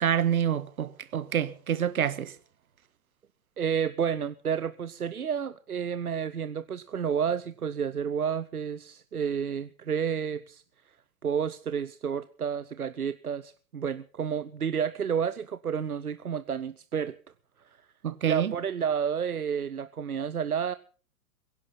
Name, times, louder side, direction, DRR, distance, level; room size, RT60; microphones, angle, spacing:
voice 1, 0.0-2.3 18.0-18.5, right 9 dB, 70° right, 1.6 m, -27 dB
voice 2, 3.6-10.6 11.2-17.2 17.6-17.8 18.3-20.7, right 7 dB, 90° right, 0.7 m, -30 dB
22.5 x 11.0 x 5.6 m
figure-of-eight pair, 105°, 43 cm